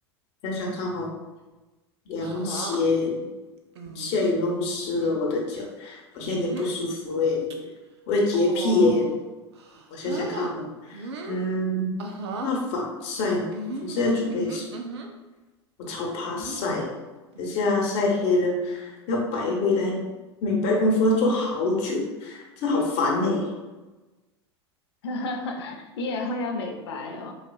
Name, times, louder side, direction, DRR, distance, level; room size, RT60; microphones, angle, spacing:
voice 1, 0.4-1.2 2.1-3.2 3.9-7.5 8.1-9.0 9.9-12.0 12.4-13.4 13.8-14.6 15.8-16.9 17.4-20.0 20.4-23.5, left 2 dB, 50° left, -2 dB, 0.9 m, -25 dB
sound 1, 2.2-2.8 3.8-4.3 4.9-5.2 6.2-6.7 7.3-7.5 8.3-9.2 9.5-10.5 10.9-11.4 12.0-12.5 13.5-15.1 16.3-16.7 17.3-17.7 18.0-18.1 19.6-20.0 21.1-21.4, right 3 dB, 75° right, 0.5 m, -37 dB
voice 2, 25.0-27.3, left 2 dB, 75° left, 3 dB, 0.6 m, -31 dB
4.1 x 2.3 x 2.3 m, 1.1 s
hypercardioid pair, 90°, 14 cm